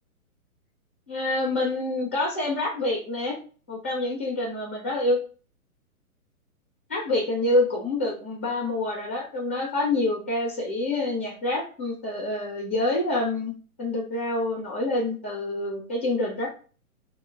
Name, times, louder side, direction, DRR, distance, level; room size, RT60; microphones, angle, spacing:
voice 1, 1.1-3.4 3.7-5.2 6.9-13.5 13.8-16.5, left 2 dB, 10° left, -1 dB, 0.4 m, -27 dB
5.5 x 2.2 x 3.6 m, 0.39 s
hypercardioid pair, 155°, 44 cm